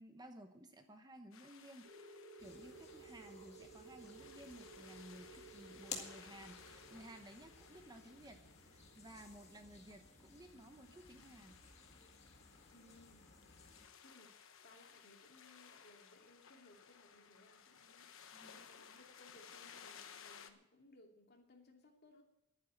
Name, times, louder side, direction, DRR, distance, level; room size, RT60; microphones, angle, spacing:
voice 1, 0.0-11.6 18.3-18.6, right 1 dB, 20° right, 6 dB, 1.0 m, -56 dB
sound 1, 1.3-20.5, left 7 dB, 65° left, 1.1 m, -60 dB
sound 2, 1.8-10.2, right 3 dB, 70° right, 3.4 m, -58 dB
morgenstemning juni, 2.4-13.9, left 4 dB, 30° left, 1.9 m, -56 dB
voice 2, 12.7-13.3 14.0-22.2, left 2 dB, 50° left, 1 dB, 2.7 m, -64 dB
11.5 x 9.7 x 8.4 m, 0.82 s
head